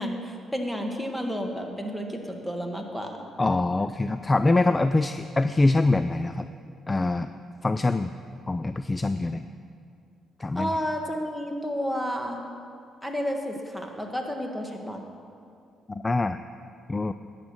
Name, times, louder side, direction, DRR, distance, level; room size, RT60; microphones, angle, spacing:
voice 1, 0.0-3.2 10.5-12.5 13.0-15.0, equal, ahead, 2 dB, 1.7 m, -31 dB
voice 2, 3.4-6.5 6.9-7.3 7.6-8.1 8.5-9.5 10.4-10.8 15.9-16.4 16.9-17.1, left 2 dB, 20° left, 11 dB, 0.4 m, -24 dB
13.0 x 9.0 x 6.4 m, 2.4 s
cardioid pair, 90°, 0 cm